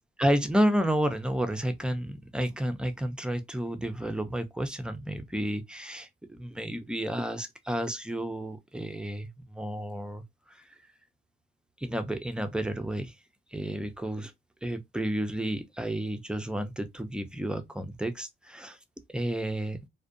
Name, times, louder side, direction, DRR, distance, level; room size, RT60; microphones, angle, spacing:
voice 1, 0.2-10.7 11.8-13.2 13.5-14.3 14.6-18.8 19.1-19.8, equal, 5° right, 0.4 m, -31 dB
2.5 x 2.2 x 2.4 m
cardioid pair, 90°, 20 cm